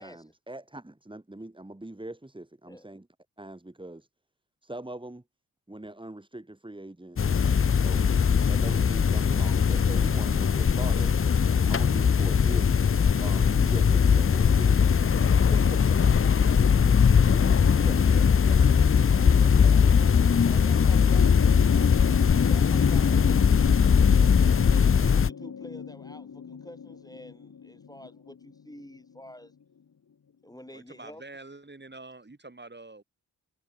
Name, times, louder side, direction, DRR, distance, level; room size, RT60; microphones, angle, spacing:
voice 1, 0.0-3.1 3.4-4.1 4.6-5.2 5.7-7.3 7.7-8.1 8.5-11.1 11.7-12.8 13.2-14.8 15.1-15.9 17.3-18.0, right 1 dB, 15° right, 3.2 m, -41 dB
sound 1, 7.2-25.3, left 6 dB, 35° left, 0.6 m, -20 dB
voice 2, 17.7-19.1 30.7-33.0, right 2 dB, 30° right, 7.1 m, -47 dB
voice 3, 19.4-20.0 20.4-21.3 22.3-23.6 24.2-29.5 30.4-31.2, left 1 dB, 10° left, 5.6 m, -48 dB
sound 2, 20.8-29.5 30.7-30.8, left 6 dB, 55° left, 1.3 m, -37 dB
wide cardioid pair, 115°, 37 cm